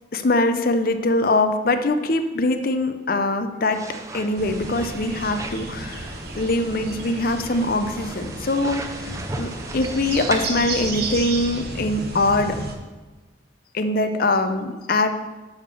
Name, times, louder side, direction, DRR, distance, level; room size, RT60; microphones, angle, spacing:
voice 1, 0.1-3.8 4.1-12.6 13.7-15.1, left 2 dB, 45° left, 8 dB, 0.6 m, -23 dB
sound 1, 3.7-10.5, right 2 dB, 15° right, 0.5 m, -37 dB
sound 2, 4.4-12.8, right 3 dB, 50° right, 1.0 m, -33 dB
7.2 x 5.4 x 6.7 m, 1.2 s
head